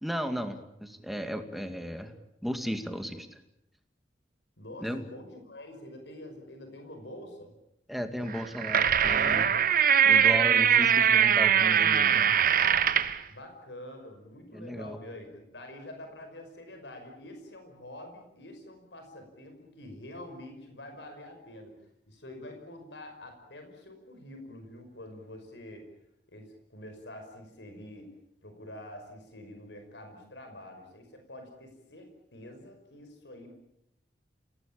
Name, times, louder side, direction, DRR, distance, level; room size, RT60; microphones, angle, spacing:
voice 1, 0.0-2.1 2.4-3.4 4.8-5.0 7.9-9.5 10.0-12.3 14.5-15.0, equal, ahead, 7 dB, 2.2 m, -35 dB
voice 2, 4.6-7.5 13.3-21.7 22.1-25.8 26.3-28.1 28.4-33.5, left 1 dB, 80° left, 5 dB, 5.6 m, -46 dB
sound 1, 8.3-13.2, right 8 dB, 55° right, 1.4 m, -22 dB
29.0 x 18.5 x 8.8 m, 0.82 s
head